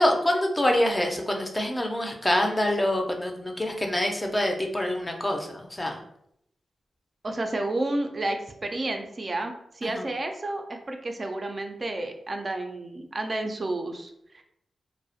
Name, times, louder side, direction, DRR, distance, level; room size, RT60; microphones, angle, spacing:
voice 1, 0.0-6.0 9.8-10.0, left 1 dB, 20° left, 3 dB, 0.5 m, -25 dB
voice 2, 7.2-14.4, right 2 dB, 40° right, 4 dB, 0.3 m, -31 dB
2.3 x 2.1 x 2.7 m, 0.75 s
cardioid pair, 65°, 0 cm